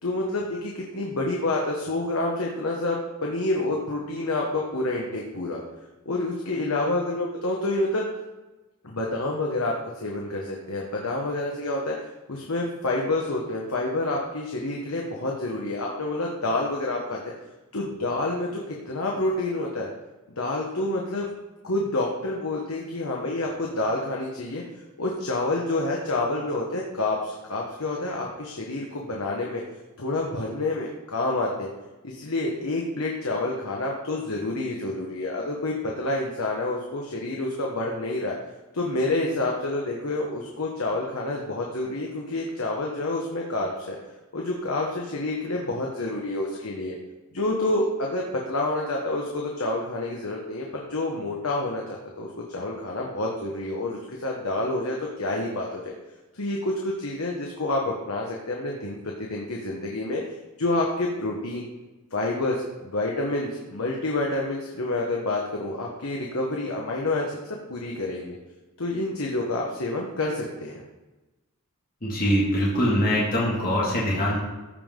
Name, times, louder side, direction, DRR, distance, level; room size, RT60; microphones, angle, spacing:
voice 1, 0.0-5.6 6.0-8.0 8.8-17.2 17.7-19.9 20.4-21.3 21.6-29.6 30.0-31.7 32.0-38.4 38.7-44.0 44.3-46.9 47.3-55.9 56.3-60.2 60.6-61.6 62.1-62.6 62.8-67.4 67.7-68.4 68.8-70.8, left 2 dB, 80° left, -1 dB, 1.2 m, -28 dB
voice 2, 72.0-74.4, equal, 40° left, -6 dB, 2.1 m, -23 dB
15.0 x 5.4 x 3.8 m, 1.1 s
head